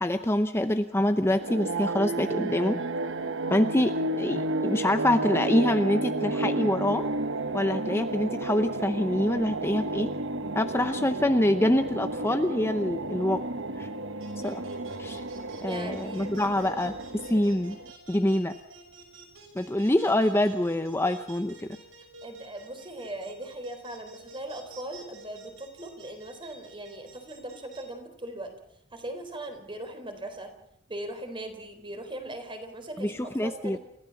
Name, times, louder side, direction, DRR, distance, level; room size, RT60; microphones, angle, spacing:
voice 1, 0.0-2.8 3.5-3.9 4.2-7.1 7.5-10.1 10.5-13.4 13.8-13.9 14.4-14.6 15.0-15.2 15.6-16.9 17.3-17.8 18.1-18.5 19.5-21.7 33.0-33.8, left 1 dB, 10° left, 8 dB, 0.8 m, -25 dB
sound 1, 1.3-17.9, right 2 dB, 65° right, 1.1 m, -32 dB
sound 2, 14.2-27.8, right 2 dB, 80° right, 6.2 m, -49 dB
voice 2, 15.6-16.3 22.2-28.5 28.9-30.5 30.9-33.8, right 1 dB, 25° right, 6 dB, 3.9 m, -39 dB
29.0 x 15.0 x 7.1 m, 0.74 s
head